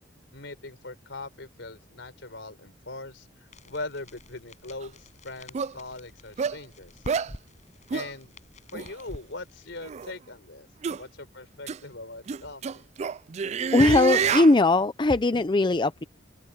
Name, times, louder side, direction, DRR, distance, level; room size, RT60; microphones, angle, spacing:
voice 1, 0.3-7.1 7.9-8.4 8.7-10.7 10.9-12.9, left 2 dB, 70° left, 4.8 m, -41 dB
sound 1, 3.5-10.1, left 1 dB, 40° left, 5.4 m, -48 dB
sound 2, 4.8-4.9 5.5-5.7 6.4-6.6 7.1-7.3 7.9-8.1 8.7-8.9 9.8-10.1 10.8-11.0 11.7-11.8 12.3-14.5, right 6 dB, 35° right, 0.3 m, -28 dB
voice 2, 13.7-16.0, left 2 dB, 25° left, 0.5 m, -20 dB
open air
head